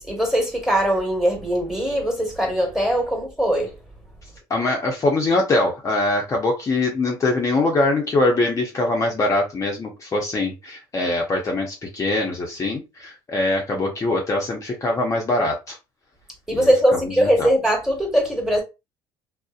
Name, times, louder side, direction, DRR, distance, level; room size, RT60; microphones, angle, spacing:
voice 1, 0.1-3.7 16.5-18.6, equal, 5° right, 1.3 m, -21 dB
voice 2, 4.5-15.8 16.5-17.5, left 2 dB, 30° left, 0.6 m, -23 dB
2.6 x 2.0 x 2.4 m
supercardioid pair, 85°, 10 cm